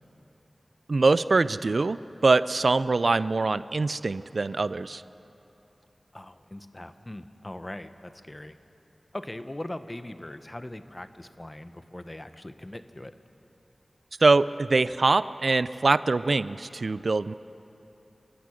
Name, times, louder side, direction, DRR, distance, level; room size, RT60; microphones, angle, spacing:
voice 1, 0.9-5.0 14.2-17.3, right 3 dB, 70° right, 16 dB, 0.4 m, -23 dB
voice 2, 6.1-8.6 9.1-13.1, left 1 dB, 25° left, 10 dB, 1.0 m, -40 dB
29.5 x 15.0 x 6.4 m, 3.0 s
wide cardioid pair, 50°, 0 cm